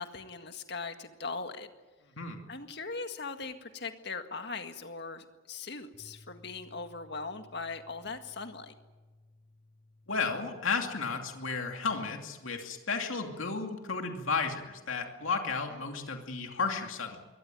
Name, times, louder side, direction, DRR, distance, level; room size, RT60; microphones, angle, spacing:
voice 1, 0.0-1.7 2.5-8.7, left 4 dB, 55° left, 7 dB, 1.9 m, -40 dB
sound 1, 5.9-12.2, left 2 dB, 40° right, 5.4 m, -59 dB
voice 2, 10.1-17.2, left 4 dB, 80° left, 3 dB, 2.6 m, -33 dB
22.5 x 18.5 x 9.4 m, 1.2 s
head